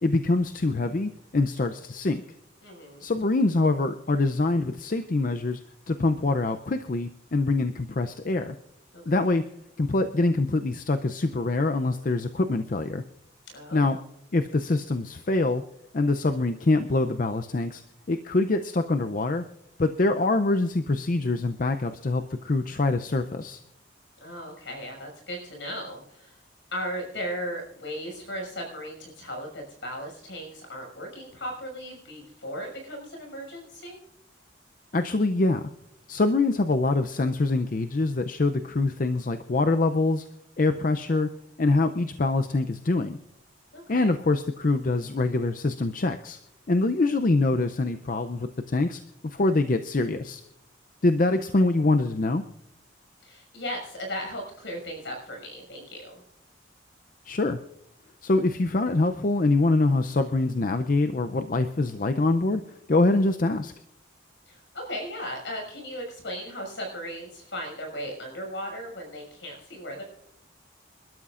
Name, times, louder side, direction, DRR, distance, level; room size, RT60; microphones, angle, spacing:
voice 1, 0.0-2.2 3.0-5.6 5.9-8.5 9.1-9.4 9.8-13.0 13.7-14.0 14.3-15.6 15.9-17.8 18.1-19.4 19.8-23.6 34.9-35.7 36.1-40.3 40.6-41.3 41.6-43.2 43.9-46.4 46.7-50.4 51.0-52.4 57.2-57.6 58.2-62.6 62.9-63.7, left 2 dB, 45° left, 8 dB, 0.5 m, -24 dB
voice 2, 2.6-3.0 8.9-9.2 13.5-13.9 24.2-26.4 26.7-34.0 43.7-44.1 53.2-56.2 64.5-70.0, equal, 70° left, 1 dB, 6.1 m, -37 dB
27.5 x 12.5 x 2.5 m, 0.79 s
head